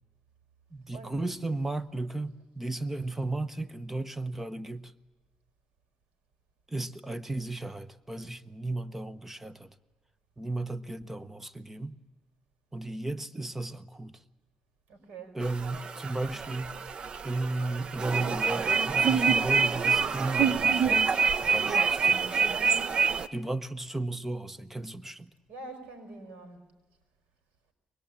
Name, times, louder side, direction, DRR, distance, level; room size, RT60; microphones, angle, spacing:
voice 1, 0.7-4.9 6.7-9.7 10.4-11.9 12.7-14.2 15.3-16.8 17.2-22.6 23.3-25.3, right 2 dB, 10° right, 1.0 m, -35 dB
voice 2, 14.9-15.4 22.4-22.8 25.5-26.6, right 2 dB, 85° right, 5.1 m, -45 dB
sound 1, 15.4-23.3, right 5 dB, 45° right, 0.8 m, -26 dB
23.5 x 20.5 x 8.8 m
cardioid pair, 105°, 2 cm